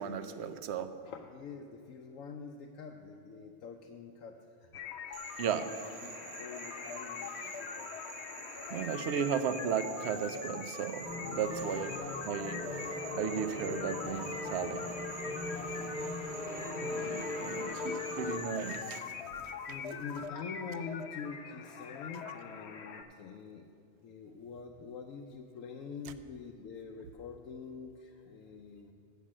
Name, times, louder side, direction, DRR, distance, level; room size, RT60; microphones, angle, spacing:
voice 1, 0.0-0.9 5.4-5.7 8.7-12.0 12.3-12.6 13.1-14.9 16.8-19.1, right 7 dB, 65° right, 10 dB, 0.8 m, -35 dB
voice 2, 1.0-4.3 4.6-5.3 5.6-7.9 11.6-12.2 15.7-16.1 17.2-17.9 19.7-23.7 24.0-28.9, left 5 dB, 85° left, 2 dB, 1.0 m, -46 dB
sound 1, 4.7-23.0, left 7 dB, 65° left, 0.8 m, -43 dB
Frog, 5.1-19.0, right 6 dB, 85° right, 1.2 m, -49 dB
sound 2, 11.0-18.4, left 2 dB, 35° right, 1.1 m, -39 dB
8.1 x 7.4 x 7.3 m, 2.4 s
omnidirectional pair, 1.3 m